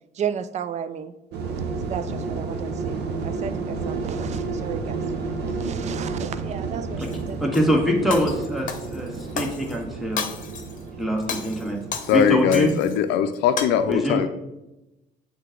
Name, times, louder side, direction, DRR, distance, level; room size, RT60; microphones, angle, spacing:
voice 1, 0.2-1.1 1.9-5.0 5.4-7.4 7.7-7.8, right 8 dB, 45° right, 13 dB, 0.4 m, -33 dB
sound 1, 1.3-12.7, right 4 dB, 80° right, 0.8 m, -31 dB
Shatter, 7.0-7.7 8.1-9.8 10.2-10.8 11.2-13.0 13.3-13.7, left 7 dB, 50° left, 0.8 m, -33 dB
voice 2, 7.0-9.1 9.3-10.3 11.0-11.8 12.1-12.7 13.9-14.3, equal, ahead, 0 dB, 1.3 m, -24 dB
voice 3, 12.1-14.3, left 8 dB, 90° left, 9 dB, 0.4 m, -21 dB
7.6 x 3.4 x 3.7 m, 0.96 s
cardioid pair, 110°, 17 cm